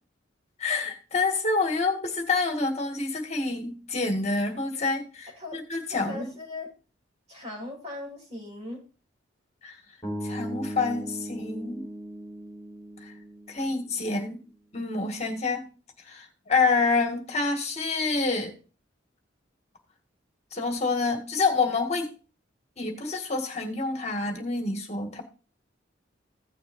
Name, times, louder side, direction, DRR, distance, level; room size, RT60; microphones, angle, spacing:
voice 1, 0.6-6.3 9.6-9.8 10.2-11.8 13.0-13.1 13.5-14.4 14.7-15.7 16.1-18.5 20.5-22.1 22.8-25.2, left 3 dB, 35° left, 1.9 m, -27 dB
voice 2, 5.9-6.7 7.3-8.8, left 2 dB, 35° right, 5.5 m, -38 dB
sound 1, 10.0-14.2, equal, 15° left, 3.4 m, -38 dB
16.5 x 6.6 x 2.6 m
head